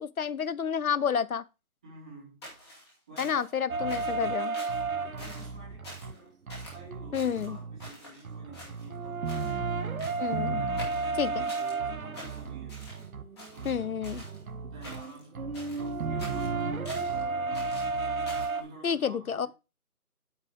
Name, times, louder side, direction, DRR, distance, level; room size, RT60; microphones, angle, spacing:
voice 1, 0.0-1.4 3.2-4.6 7.1-7.6 10.2-10.6 11.2-11.4 13.6-14.2 18.8-19.5, left 7 dB, 75° left, 0.6 m, -30 dB
voice 2, 1.8-2.4 2.8-3.6 5.0-10.0 10.5-12.7 13.5-13.9 14.6-17.9 18.5-19.5, right 3 dB, 5° right, 1.1 m, -50 dB
sound 1, 2.4-3.6 3.9-4.2 4.5-4.8 5.2-5.5 5.8-6.2 6.5-6.8 7.1-8.2 8.5-9.0 9.3-9.6 10.0-10.4 10.8-11.8 12.1-13.1 13.4-14.4 14.8-15.2 15.5-17.2 17.5-18.6, equal, 20° left, 2.4 m, -46 dB
sound 2, 3.7-6.1 6.5-7.9 8.2-18.6, right 4 dB, 70° right, 1.1 m, -33 dB
8.8 x 5.9 x 3.6 m
figure-of-eight pair, 165°, 44 cm